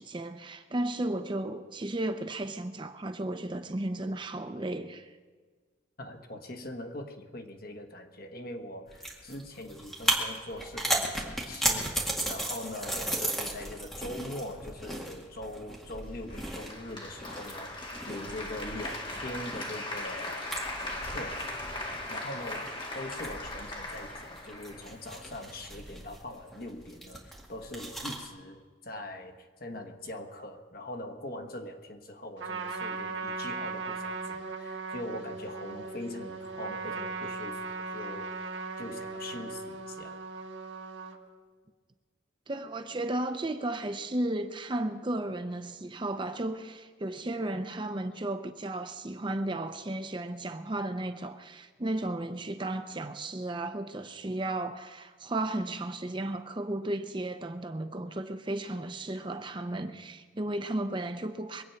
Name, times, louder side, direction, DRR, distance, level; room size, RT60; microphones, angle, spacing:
voice 1, 0.0-5.1 42.5-61.6, right 1 dB, 25° right, 0.6 m, -34 dB
voice 2, 6.0-21.5 22.1-40.2, left 1 dB, 50° left, 1.4 m, -42 dB
sound 1, 8.9-28.3, right 1 dB, ahead, 2.0 m, -36 dB
Applause, 16.3-25.3, left 1 dB, 25° left, 1.7 m, -39 dB
Trumpet, 32.4-41.2, right 3 dB, 75° right, 1.6 m, -38 dB
23.0 x 8.7 x 5.8 m
head